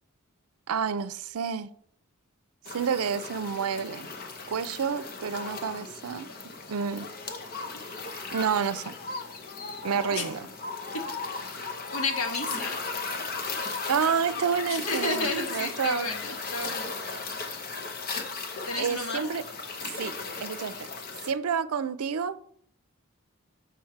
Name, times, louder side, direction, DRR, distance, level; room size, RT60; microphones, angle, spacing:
voice 1, 0.7-1.7 2.7-4.1 4.5-6.3 6.7-7.1 8.3-8.9 9.8-10.5 13.9-16.1 18.8-19.4 20.0-20.1 20.4-20.9 21.2-22.5, right 6 dB, 80° right, 0.5 m, -29 dB
sound 1, 2.6-21.3, left 4 dB, 40° left, 0.8 m, -36 dB
voice 2, 11.6-12.8 14.7-16.9 18.6-19.2, left 3 dB, 85° left, 1.5 m, -32 dB
6.4 x 6.0 x 4.5 m
head